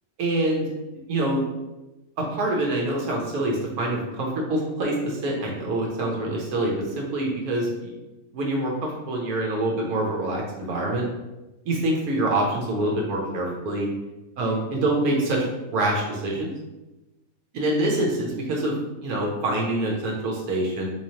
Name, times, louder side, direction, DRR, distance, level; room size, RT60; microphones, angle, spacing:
voice 1, 0.2-0.7 1.1-1.4 2.2-7.9 8.3-11.0 11.7-13.9 14.4-15.5 15.7-16.5 17.5-20.9, right 1 dB, 80° right, -1 dB, 1.2 m, -25 dB
3.6 x 3.1 x 2.7 m, 1.0 s
omnidirectional pair, 1.5 m